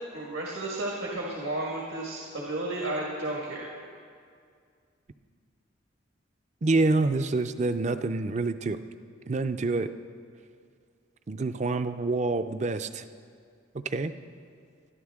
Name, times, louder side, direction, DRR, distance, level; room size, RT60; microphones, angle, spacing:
voice 1, 0.1-3.7, right 1 dB, 80° right, -3 dB, 1.8 m, -33 dB
voice 2, 6.6-8.8 9.3-9.9 11.3-13.0 13.7-14.1, right 3 dB, 35° right, 11 dB, 0.4 m, -27 dB
21.0 x 12.5 x 3.6 m, 2.2 s
head